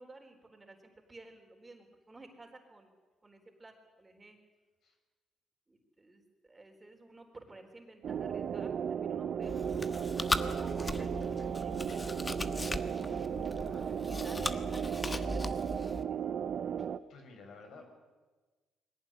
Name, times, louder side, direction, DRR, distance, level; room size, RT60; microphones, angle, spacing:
voice 1, 0.0-2.9 3.2-4.4 5.7-10.0 10.6-12.1 13.4-16.2 16.8-16.9 17.7-17.9, right 2 dB, 20° right, 4 dB, 4.1 m, -54 dB
sound 1, 8.0-17.0, right 8 dB, 55° right, 0.7 m, -35 dB
Chewing mastication, 9.4-16.0, left 2 dB, 20° left, 1.3 m, -38 dB
voice 2, 17.1-17.9, left 4 dB, 70° left, 4 dB, 5.5 m, -53 dB
21.5 x 18.0 x 9.8 m, 1.3 s
cardioid pair, 90°, 0 cm